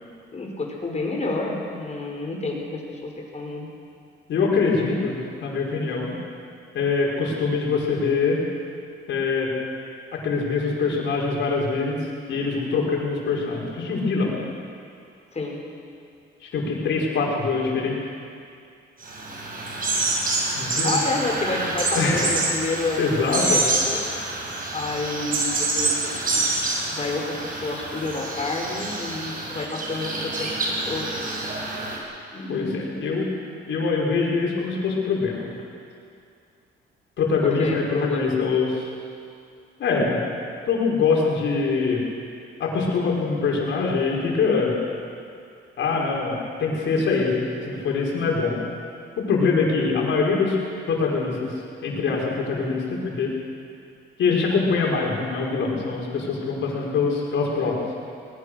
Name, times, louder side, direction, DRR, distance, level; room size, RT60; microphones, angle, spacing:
voice 1, 0.3-3.7 15.3-15.6 20.8-24.0 24.7-30.6 30.8-31.1 32.3-33.0 37.4-38.3, left 2 dB, 35° left, 0 dB, 5.2 m, -30 dB
voice 2, 4.3-6.1 6.7-8.4 9.1-9.5 10.1-12.0 12.3-14.4 16.4-18.0 20.6-21.0 21.9-22.3 23.0-23.6 32.5-33.3 33.7-35.5 37.2-38.8 39.8-40.2 40.7-42.0 42.6-44.8 45.8-48.6 49.2-50.6 50.9-51.5 51.8-53.3 54.2-57.8, left 4 dB, 70° left, -2 dB, 5.7 m, -23 dB
sound 1, 19.0-32.0, right 2 dB, 45° right, 5.7 m, -27 dB
21.5 x 20.5 x 6.6 m, 2.4 s
cardioid pair, 90°, 20 cm